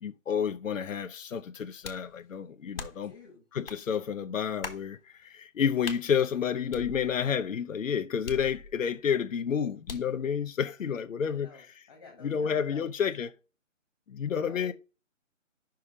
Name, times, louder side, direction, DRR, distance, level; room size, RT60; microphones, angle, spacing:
voice 1, 0.0-3.1 3.5-11.8 12.2-13.3 14.1-14.7, left 7 dB, 80° left, 0.7 m, -30 dB
sound 1, 1.8-2.1 2.8-3.1 3.7-3.8 4.6-4.9 5.8-6.0 6.7-7.4 8.3-8.9 9.9-10.2, left 4 dB, 45° left, 1.1 m, -40 dB
voice 2, 2.8-3.4 11.3-13.1 14.3-14.7, left 3 dB, 20° left, 1.8 m, -52 dB
5.7 x 5.1 x 4.9 m
hypercardioid pair, 175°, 39 cm